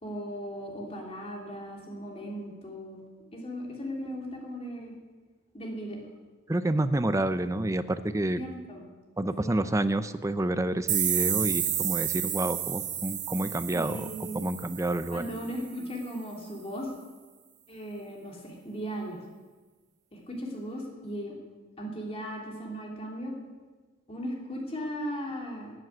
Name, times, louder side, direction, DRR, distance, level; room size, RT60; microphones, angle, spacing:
voice 1, 0.0-3.1 3.3-4.9 5.5-6.0 8.4-8.8 9.4-9.6 13.7-14.4 15.1-16.9 17.7-19.2 20.1-21.4 21.8-23.3 24.1-25.7, equal, 30° left, -1 dB, 2.9 m, -37 dB
voice 2, 6.5-8.4 9.2-14.1 14.3-15.2, right 1 dB, 15° right, 12 dB, 0.5 m, -28 dB
sound 1, 10.9-15.5, right 10 dB, 40° right, 1.3 m, -31 dB
14.0 x 7.6 x 9.4 m, 1.3 s
head